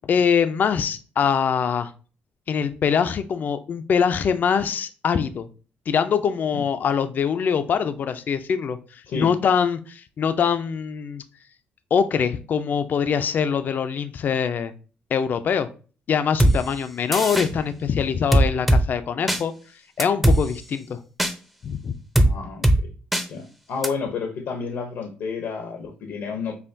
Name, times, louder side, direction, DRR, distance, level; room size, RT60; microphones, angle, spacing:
voice 1, 0.0-1.9 2.5-5.5 5.9-11.2 11.9-14.7 15.1-15.7 16.1-19.5 20.0-21.0 21.6-21.9, left 7 dB, 50° left, 10 dB, 0.4 m, -23 dB
sound 1, 16.4-16.5 17.1-17.5 18.3-18.8 19.3-19.4 20.0-20.4 21.2-21.3 22.1-22.3 22.6-22.8 23.1-23.2 23.8-23.9, right 1 dB, 5° right, 0.5 m, -17 dB
voice 2, 22.2-22.9 23.3-26.6, left 5 dB, 80° left, 4 dB, 0.7 m, -31 dB
5.5 x 2.2 x 2.6 m, 0.37 s
cardioid pair, 100°, 4 cm